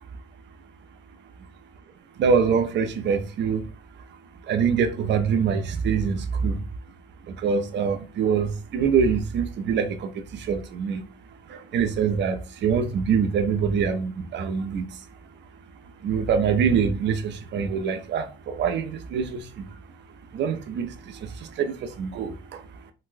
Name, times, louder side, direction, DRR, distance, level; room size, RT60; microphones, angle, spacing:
voice 1, 2.2-3.6 4.5-6.6 7.4-10.1 10.5-11.0 11.7-14.9 16.0-19.4 20.3-20.9 21.6-22.3, right 6 dB, 65° right, 0.6 m, -24 dB
3.9 x 2.1 x 2.5 m
cardioid pair, 90°, 20 cm